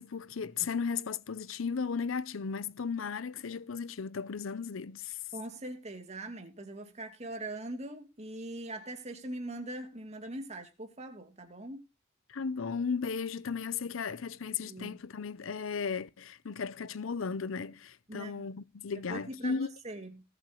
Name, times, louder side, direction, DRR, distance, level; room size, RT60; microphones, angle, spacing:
voice 1, 0.0-5.2 12.3-19.7, left 5 dB, 75° left, 0.6 m, -35 dB
voice 2, 5.3-11.8 14.5-15.0 18.1-18.5 19.1-20.2, right 1 dB, 35° right, 2.5 m, -42 dB
20.5 x 8.0 x 3.0 m
head